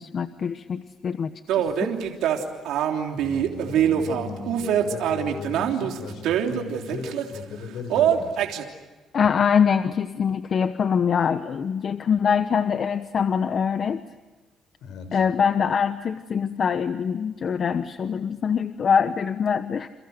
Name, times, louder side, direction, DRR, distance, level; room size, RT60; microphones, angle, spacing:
voice 1, 0.0-1.3 1.8-1.9 9.1-14.0 15.1-19.9, left 7 dB, 45° left, 10 dB, 1.1 m, -23 dB
sound 1, 1.5-7.4 7.9-8.6, right 9 dB, 90° right, 3.3 m, -24 dB
voice 2, 3.1-8.5 14.8-15.2, left 4 dB, 70° left, 9 dB, 7.0 m, -37 dB
30.0 x 29.0 x 6.7 m, 1.3 s
cardioid pair, 125°, 0 cm